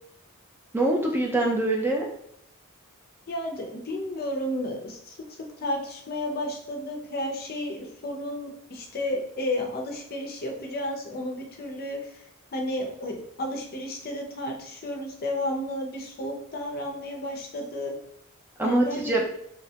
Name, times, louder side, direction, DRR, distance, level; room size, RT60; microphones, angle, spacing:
voice 1, 0.7-2.1 18.6-19.3, right 2 dB, 10° right, 0 dB, 0.3 m, -24 dB
voice 2, 3.3-12.2 12.5-17.9 18.6-19.2, left 1 dB, 45° left, 2 dB, 0.5 m, -32 dB
2.8 x 2.2 x 2.7 m, 0.74 s
head